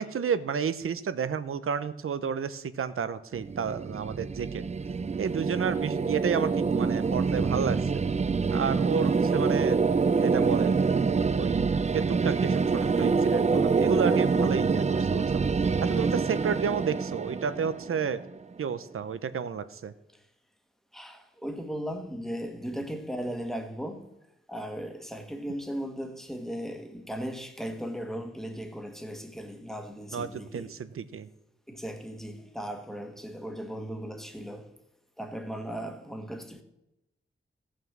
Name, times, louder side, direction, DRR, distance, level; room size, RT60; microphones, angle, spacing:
voice 1, 0.0-4.6 5.2-8.1 8.5-9.8 10.2-10.7 11.3-11.6 11.9-15.4 15.8-18.2 18.6-19.9 30.1-31.3, right 7 dB, 85° right, 0.8 m, -31 dB
sound 1, 3.3-18.4, right 4 dB, 30° right, 0.5 m, -26 dB
voice 2, 20.9-24.1 24.5-30.7 31.7-34.7 35.2-36.6, equal, ahead, 1.5 m, -37 dB
15.5 x 6.4 x 7.3 m
wide cardioid pair, 110°, 21 cm